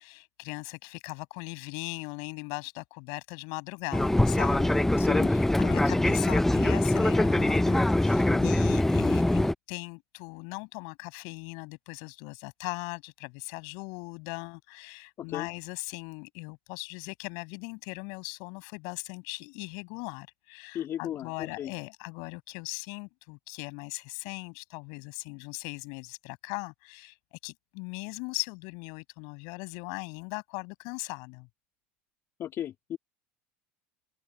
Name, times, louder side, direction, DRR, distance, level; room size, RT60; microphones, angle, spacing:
voice 1, 0.0-4.8 5.3-27.2 27.4-31.5, left 34 dB, 60° left, 6.3 m, -39 dB
Fixed-wing aircraft airplane, 3.9-9.5, left 1 dB, 5° left, 0.4 m, -23 dB
voice 2, 5.0-5.3 5.6-5.8 8.3-8.6 15.2-15.5 20.7-21.7 32.4-33.0, left 11 dB, 40° left, 2.4 m, -35 dB
hypercardioid pair, 80°, 7 cm